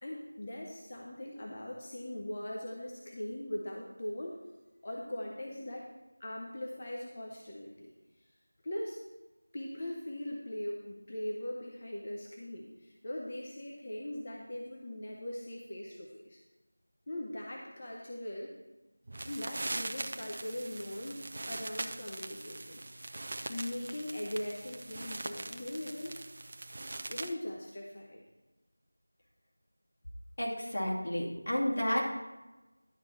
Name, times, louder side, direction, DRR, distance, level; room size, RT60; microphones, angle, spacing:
voice 1, 0.0-4.4 4.8-5.9 6.2-7.9 8.6-9.0 9.5-16.4 17.1-18.5 19.3-23.2 23.5-26.2 27.1-28.2, left 1 dB, 30° left, -1 dB, 0.9 m, -40 dB
sound 1, 19.1-27.3, right 2 dB, 35° right, 0.5 m, -41 dB
voice 2, 30.4-32.1, equal, 60° left, -5 dB, 2.4 m, -31 dB
11.0 x 4.4 x 5.7 m, 1.1 s
figure-of-eight pair, 175°, 0 cm